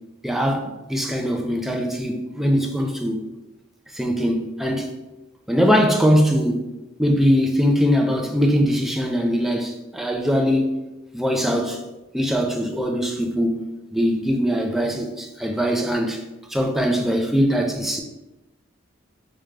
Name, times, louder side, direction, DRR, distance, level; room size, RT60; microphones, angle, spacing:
voice 1, 0.2-3.2 3.9-4.9 5.5-6.6 7.0-10.7 11.1-11.8 12.1-13.6 13.9-16.2 16.5-18.0, equal, ahead, 0.4 m, -21 dB
5.0 x 2.2 x 3.2 m
head